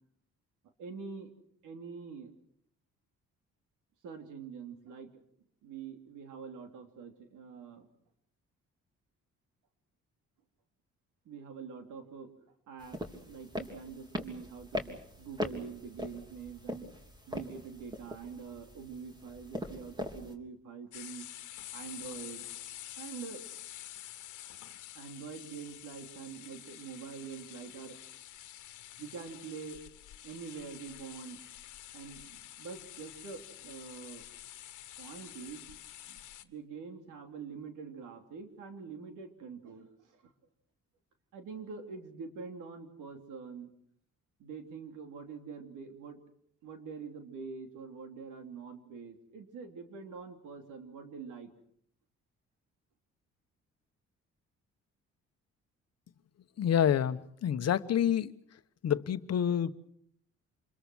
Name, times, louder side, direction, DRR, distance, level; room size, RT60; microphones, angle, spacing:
voice 1, 0.8-1.3 1.6-2.3 4.0-5.1 5.6-7.9 11.2-12.3 12.7-21.3 21.7-22.5 23.0-23.6 24.9-28.2 29.0-29.8 30.2-31.4 31.9-34.2 35.0-35.7 36.1-40.3 41.3-43.7 44.4-46.2 46.6-51.5, right 5 dB, 85° right, 3.3 m, -45 dB
sound 1, 12.8-20.3, left 1 dB, 15° right, 3.3 m, -41 dB
sound 2, 20.9-36.4, left 13 dB, 80° left, 1.4 m, -48 dB
voice 2, 56.6-58.3 58.8-59.7, left 9 dB, 55° left, 1.1 m, -28 dB
27.5 x 21.5 x 6.3 m
cardioid pair, 90°, 30 cm